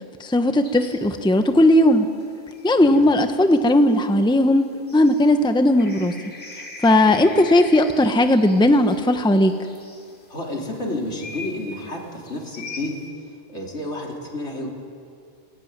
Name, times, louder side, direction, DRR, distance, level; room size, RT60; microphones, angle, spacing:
voice 1, 0.2-2.1 2.6-4.7 4.9-6.1 6.8-9.5, left 1 dB, 5° left, 7 dB, 0.9 m, -17 dB
sound 1, 0.6-13.1, left 3 dB, 65° left, 3.2 m, -43 dB
voice 2, 6.8-7.2 10.3-14.7, left 1 dB, 80° left, -1 dB, 3.8 m, -31 dB
19.5 x 19.5 x 9.5 m, 2.3 s
omnidirectional pair, 1.2 m